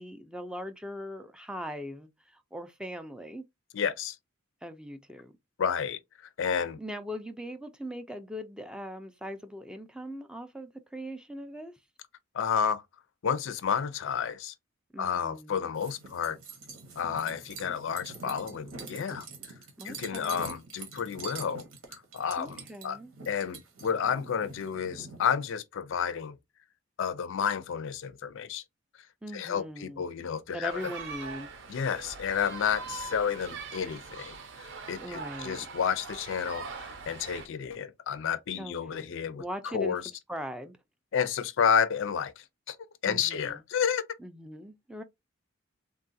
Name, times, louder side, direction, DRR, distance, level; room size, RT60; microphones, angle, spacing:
voice 1, 0.0-3.4 4.6-5.3 6.8-11.7 14.9-15.7 19.8-20.6 22.4-23.1 29.2-30.1 30.5-31.5 34.9-35.7 38.5-39.1 39.4-40.0 40.3-40.8 43.0-43.6 44.2-45.0, equal, 5° right, 0.3 m, -40 dB
voice 2, 3.7-4.2 5.6-6.0 6.4-6.8 12.3-12.8 13.2-14.5 15.0-16.4 17.0-19.3 19.8-21.7 21.9-23.0 23.3-26.4 27.0-28.6 29.3-30.7 31.7-39.4 39.7-40.0 41.1-42.8 43.0-44.0, left 7 dB, 65° left, 0.4 m, -31 dB
sound 1, 15.8-25.2, right 4 dB, 85° right, 1.0 m, -45 dB
sound 2, 30.6-37.5, right 4 dB, 60° right, 0.7 m, -42 dB
3.6 x 2.3 x 2.6 m
head